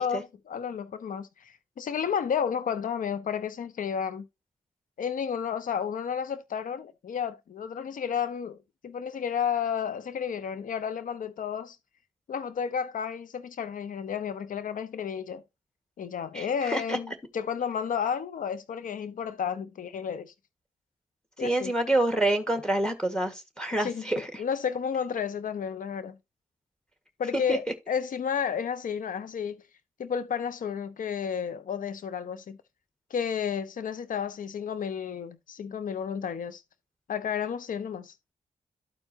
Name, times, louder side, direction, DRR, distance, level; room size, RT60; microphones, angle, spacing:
voice 1, 0.0-4.3 5.0-8.6 8.8-11.8 12.3-15.4 16.0-20.3 21.4-21.7 23.8-26.2 27.2-29.6 30.0-32.6 33.1-36.6 37.1-38.1, left 7 dB, 75° left, 0.6 m, -32 dB
voice 2, 16.3-17.0 21.4-24.3 27.5-27.6, right 1 dB, 5° left, 1.6 m, -27 dB
13.0 x 4.5 x 2.8 m
cardioid pair, 55°, 14 cm